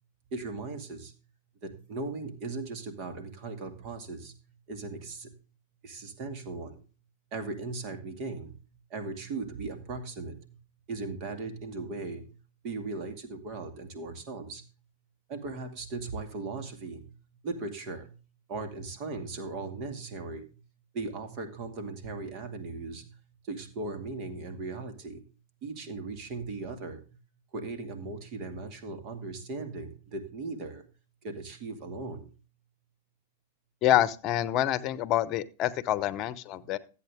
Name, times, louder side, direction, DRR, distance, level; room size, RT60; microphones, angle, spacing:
voice 1, 0.3-1.1 1.6-4.3 4.7-5.3 5.8-6.8 7.3-8.5 8.9-10.4 10.9-12.2 12.6-14.6 15.3-17.1 17.4-18.1 18.5-20.4 20.9-23.1 23.5-25.2 25.6-27.0 27.5-30.8 31.2-32.3, right 3 dB, 45° right, 6 dB, 2.3 m, -38 dB
voice 2, 33.8-36.8, left 12 dB, 40° left, 17 dB, 0.9 m, -27 dB
13.5 x 8.5 x 3.6 m, 0.34 s
hypercardioid pair, 115°, 0 cm